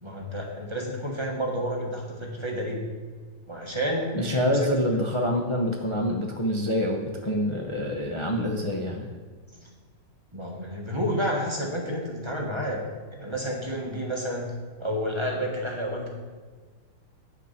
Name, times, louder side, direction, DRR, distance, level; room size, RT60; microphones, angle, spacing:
voice 1, 0.0-2.8 3.5-4.1 4.4-4.6 9.5-9.7 10.3-12.8 13.1-14.5 14.8-16.1, equal, 20° right, -1 dB, 1.2 m, -30 dB
voice 2, 4.1-9.1, equal, 30° left, 0 dB, 0.5 m, -26 dB
9.2 x 6.9 x 5.8 m, 1.4 s
omnidirectional pair, 2.0 m